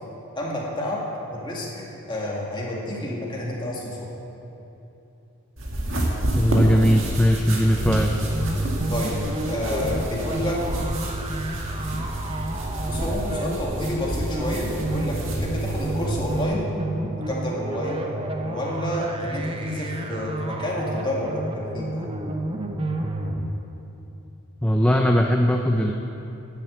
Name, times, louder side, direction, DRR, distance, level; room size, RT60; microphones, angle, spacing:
voice 1, 0.4-1.0 1.3-1.7 2.1-4.1 8.9-10.6 12.8-16.7 17.2-22.2, left 1 dB, 20° left, -4 dB, 2.1 m, -30 dB
sound 1, 5.6-16.4, right 1 dB, 60° right, 2.1 m, -29 dB
voice 2, 6.4-8.1 24.6-25.9, equal, 5° left, 2 dB, 0.4 m, -19 dB
sound 2, 7.5-23.5, right 1 dB, 25° right, 0.7 m, -30 dB
10.5 x 8.2 x 8.2 m, 3.0 s
head